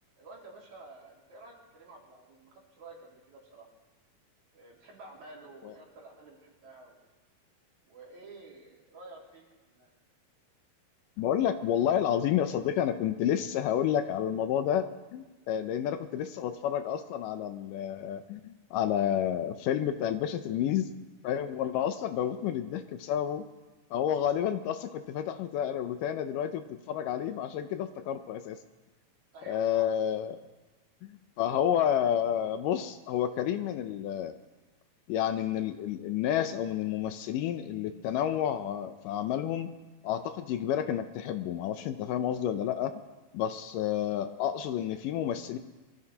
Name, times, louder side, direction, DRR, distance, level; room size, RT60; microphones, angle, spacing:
voice 1, 0.2-3.7 4.5-7.0 7.9-9.9 29.3-29.9, right 2 dB, 55° right, -3 dB, 3.8 m, -51 dB
voice 2, 11.2-20.9 21.2-23.5 23.9-28.6 29.5-30.4 31.0-34.3 35.1-39.7 40.0-42.9 43.3-45.6, left 10 dB, 80° left, 9 dB, 2.1 m, -30 dB
24.0 x 14.0 x 2.9 m, 1.2 s
omnidirectional pair, 4.0 m